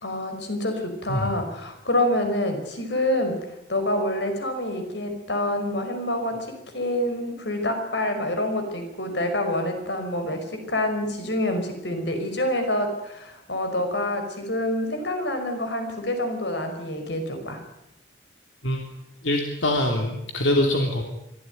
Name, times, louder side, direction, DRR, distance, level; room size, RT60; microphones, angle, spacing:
voice 1, 0.0-3.4 3.7-17.6, left 1 dB, 70° left, 6 dB, 5.4 m, -27 dB
voice 2, 19.2-21.0, left 1 dB, 90° left, 3 dB, 3.1 m, -23 dB
24.0 x 15.0 x 9.3 m, 0.84 s
head